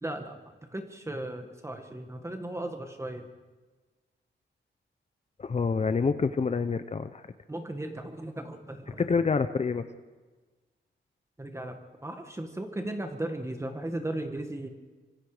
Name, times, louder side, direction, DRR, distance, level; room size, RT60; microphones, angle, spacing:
voice 1, 0.0-3.3 7.5-9.1 11.4-14.7, right 1 dB, 15° right, 5 dB, 1.8 m, -36 dB
voice 2, 5.4-7.3 9.0-9.8, left 5 dB, 35° left, 10 dB, 0.8 m, -27 dB
25.5 x 24.5 x 5.1 m, 1.3 s
wide cardioid pair, 115°, 19 cm